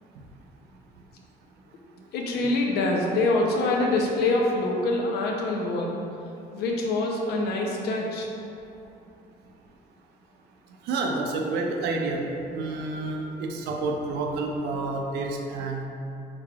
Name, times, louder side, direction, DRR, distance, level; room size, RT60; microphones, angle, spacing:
voice 1, 2.1-6.0 6.5-8.3, left 2 dB, 75° left, -1 dB, 0.6 m, -25 dB
voice 2, 10.8-12.2 12.5-15.8, right 3 dB, 80° right, 2 dB, 0.4 m, -29 dB
3.7 x 3.1 x 2.4 m, 2.7 s
cardioid pair, 110°, 17 cm